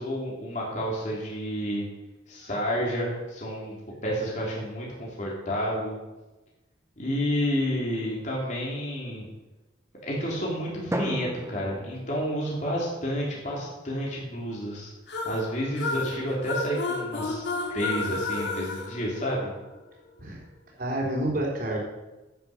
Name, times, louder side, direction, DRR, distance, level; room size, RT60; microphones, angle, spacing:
voice 1, 0.0-1.8 2.3-3.8 4.0-6.0 7.0-9.2 10.0-14.9 15.2-19.5, equal, 40° left, -4 dB, 3.2 m, -30 dB
Drum, 10.9-13.2, right 1 dB, 15° right, 0.6 m, -36 dB
sound 1, 15.1-19.8, left 3 dB, 60° left, 2.3 m, -32 dB
voice 2, 20.8-21.8, right 1 dB, 45° right, -2 dB, 3.8 m, -28 dB
10.5 x 9.5 x 6.4 m, 1.1 s
head